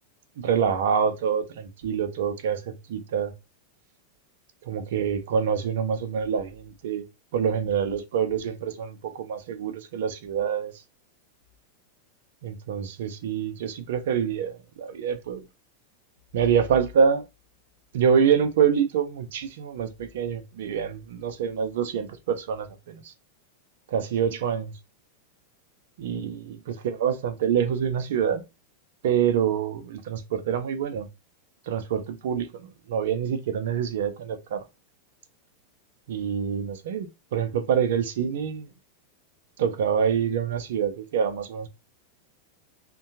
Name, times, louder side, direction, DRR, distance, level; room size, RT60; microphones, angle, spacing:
voice 1, 0.4-3.3 4.6-7.0 7.3-10.7 12.4-15.4 16.3-17.2 17.9-23.1 23.9-24.7 26.0-28.4 29.0-31.1 31.7-34.6 36.1-38.7 39.6-41.7, right 7 dB, 55° right, 0.5 m, -26 dB
3.5 x 2.2 x 2.8 m
figure-of-eight pair, 90°, 0 cm